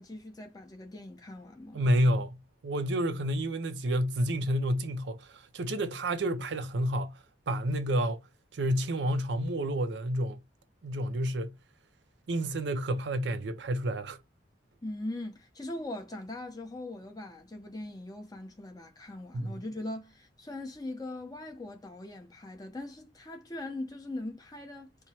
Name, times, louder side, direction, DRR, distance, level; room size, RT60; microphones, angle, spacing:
voice 1, 0.0-1.8 14.8-24.9, left 1 dB, 20° left, 0.8 m, -40 dB
voice 2, 1.7-7.2 7.5-8.2 8.5-10.4 10.8-11.5 12.3-14.2 19.3-19.5, equal, 65° right, 0.5 m, -29 dB
4.3 x 2.1 x 4.3 m
head